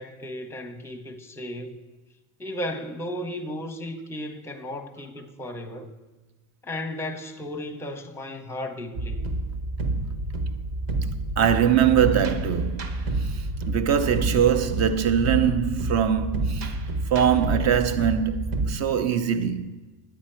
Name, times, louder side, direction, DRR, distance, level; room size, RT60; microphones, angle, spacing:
voice 1, 0.0-1.8 2.4-5.9 6.6-9.3, left 1 dB, 5° left, 0.7 m, -35 dB
sound 1, 8.9-18.7, right 2 dB, 65° right, 1.2 m, -29 dB
voice 2, 11.4-19.8, right 8 dB, 45° right, 0.7 m, -23 dB
10.5 x 8.6 x 4.4 m
supercardioid pair, 115°, 39 cm